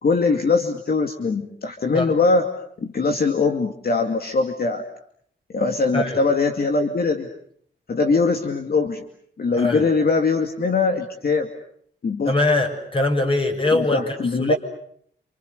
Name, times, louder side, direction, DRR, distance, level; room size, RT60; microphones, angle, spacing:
voice 1, 0.0-2.5 2.8-4.8 5.5-7.3 7.9-9.0 9.4-11.5 12.0-12.3 13.7-14.5, left 4 dB, 55° left, 4 dB, 2.4 m, -21 dB
voice 2, 12.3-14.0 14.4-14.6, left 2 dB, 30° left, 4 dB, 7.1 m, -22 dB
28.5 x 28.5 x 6.8 m, 0.65 s
cardioid pair, 80°, 19 cm